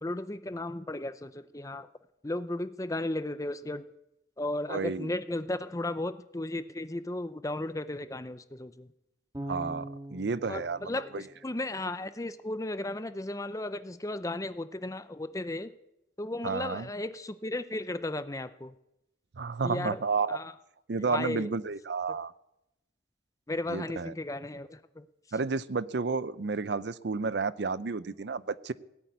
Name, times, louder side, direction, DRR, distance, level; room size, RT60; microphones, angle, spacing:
voice 1, 0.0-1.9 2.2-3.9 4.4-8.9 10.5-15.7 16.2-18.7 19.6-20.0 20.3-20.5 21.0-21.5 23.5-25.0, left 1 dB, 15° left, 12 dB, 0.6 m, -35 dB
voice 2, 4.7-5.1 9.5-9.9 10.1-11.2 16.4-16.9 19.4-20.4 20.9-22.3 23.7-24.1 25.3-28.7, right 4 dB, 60° right, 17 dB, 0.5 m, -31 dB
Bass guitar, 9.3-12.4, right 1 dB, 15° right, 2.1 m, -43 dB
18.0 x 8.5 x 9.4 m, 0.86 s
head